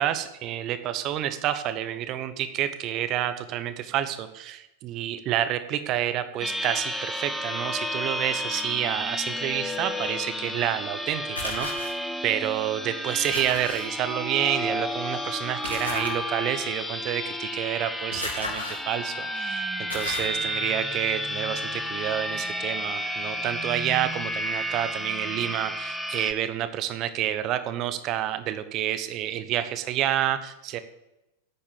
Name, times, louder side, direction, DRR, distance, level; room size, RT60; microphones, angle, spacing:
voice 1, 0.0-11.7 12.2-30.8, right 11 dB, 35° right, 11 dB, 1.0 m, -29 dB
sound 1, 6.4-26.3, equal, 5° left, 1.0 m, -32 dB
sound 2, 11.3-11.9 13.3-13.8 15.6-16.1 18.1-18.8 19.3-19.4 19.9-20.3, left 2 dB, 85° left, 4.0 m, -33 dB
10.5 x 8.5 x 6.7 m, 0.94 s
figure-of-eight pair, 90°, 0 cm